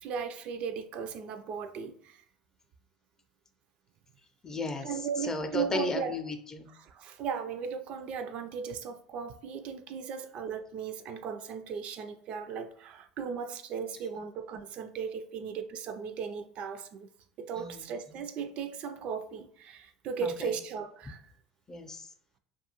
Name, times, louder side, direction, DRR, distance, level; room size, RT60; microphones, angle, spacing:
voice 1, 0.0-2.2 4.8-6.1 6.7-17.1 17.4-21.2, right 6 dB, 55° right, 0.3 m, -37 dB
voice 2, 4.4-6.7 17.6-17.8 18.1-18.2 20.2-20.6 21.7-22.1, left 2 dB, 25° left, 0.5 m, -35 dB
2.3 x 2.3 x 2.9 m
hypercardioid pair, 75°, 2 cm